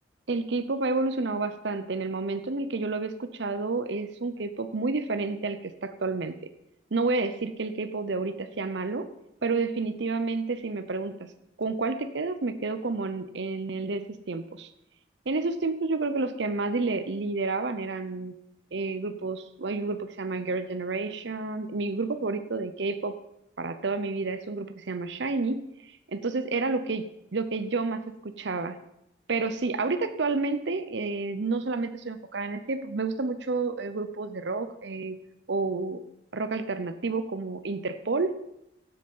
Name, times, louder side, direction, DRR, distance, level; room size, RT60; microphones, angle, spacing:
voice 1, 0.3-6.5 6.9-9.1 9.4-11.3 11.6-14.7 15.3-18.3 18.7-23.2 23.6-27.0 27.3-28.8 29.3-35.2 35.5-36.0 36.3-38.4, right 3 dB, 65° right, 11 dB, 0.7 m, -30 dB
16.5 x 7.7 x 5.5 m, 0.83 s
head